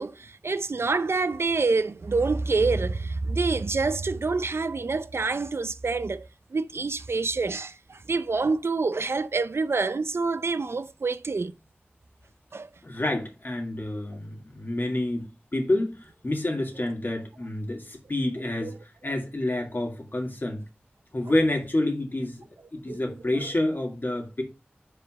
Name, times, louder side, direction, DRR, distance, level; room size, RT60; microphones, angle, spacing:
voice 1, 0.0-11.5 12.5-12.7 18.6-18.7 22.9-23.0, right 3 dB, 85° right, 0.5 m, -27 dB
voice 2, 12.8-15.3 15.5-18.7 19.0-20.6 21.1-22.4 22.7-24.4, left 1 dB, 55° left, 2.2 m, -28 dB
4.9 x 4.7 x 6.2 m
wide cardioid pair, 50°, 4 cm